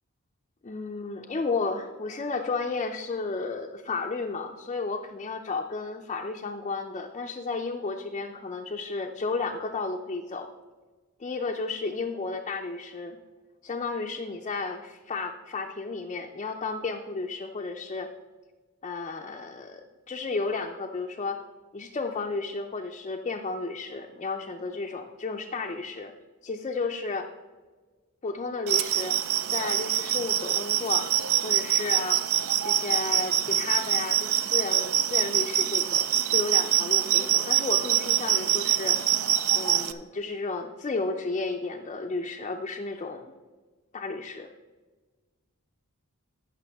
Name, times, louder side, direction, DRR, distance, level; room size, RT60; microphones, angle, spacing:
voice 1, 0.6-10.5 11.2-13.2 13.6-18.1 18.8-21.4 21.7-26.1 26.4-27.3 28.2-29.2 29.5-31.1 31.4-32.2 32.6-39.0 39.5-43.3 43.9-44.5, left 3 dB, 30° left, 2 dB, 0.4 m, -33 dB
sound 1, 28.7-39.9, right 11 dB, 70° right, 0.5 m, -25 dB
15.0 x 6.1 x 3.5 m, 1.4 s
head